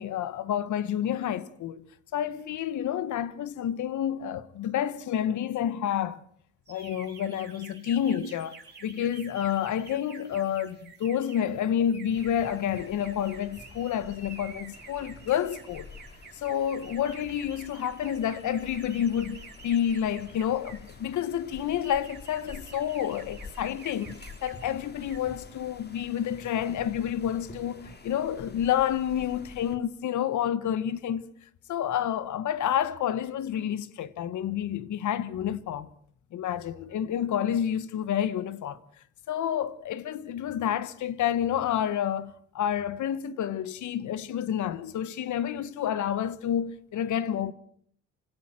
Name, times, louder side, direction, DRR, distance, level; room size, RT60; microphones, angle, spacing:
voice 1, 0.0-1.8 2.1-6.2 6.7-15.9 16.3-31.2 31.7-35.9 36.3-38.8 39.3-47.5, left 9 dB, 75° left, 1.4 m, -29 dB
sound 1, 6.7-20.9 21.5-24.7 25.0-25.3, right 5 dB, 35° right, 6.4 m, -50 dB
sound 2, 12.1-29.8, left 3 dB, 35° left, 3.3 m, -48 dB
27.5 x 17.0 x 7.6 m
cardioid pair, 90°, 30 cm